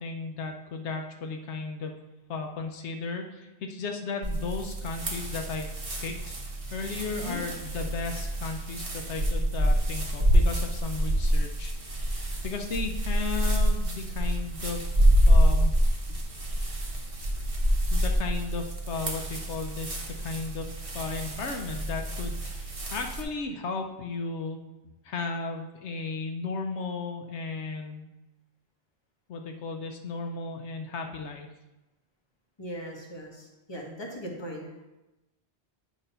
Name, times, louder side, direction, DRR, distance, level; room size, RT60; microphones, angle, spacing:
voice 1, 0.0-2.0 2.3-5.7 6.0-6.4 6.7-14.8 15.3-15.8 17.9-20.7 20.9-24.6 25.0-28.1 29.3-31.5, left 4 dB, 80° left, 4 dB, 1.0 m, -35 dB
sound 1, 4.2-23.2, equal, 30° right, 1.0 m, -27 dB
voice 2, 32.6-34.9, equal, 25° left, -1 dB, 1.3 m, -39 dB
8.9 x 3.0 x 5.4 m, 1.0 s
omnidirectional pair, 1.2 m